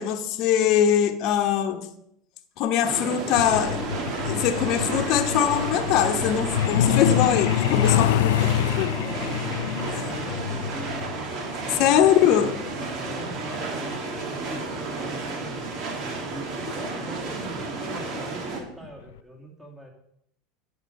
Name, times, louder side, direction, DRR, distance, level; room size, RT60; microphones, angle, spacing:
voice 1, 0.0-1.9 2.6-3.9 4.2-8.9 11.7-12.6, left 9 dB, 55° left, 1.0 m, -22 dB
sound 1, 2.8-18.6, right 3 dB, 55° right, 2.1 m, -32 dB
Truck, 3.4-15.7 16.9-17.1 17.5-17.6 18.0-18.3 18.6-18.7 19.2-19.3, left 11 dB, 80° left, 0.4 m, -27 dB
voice 2, 8.8-11.2 11.6-15.7 16.3-19.9, equal, 10° right, 2.3 m, -42 dB
9.2 x 5.3 x 6.6 m
hypercardioid pair, 100°, 0 cm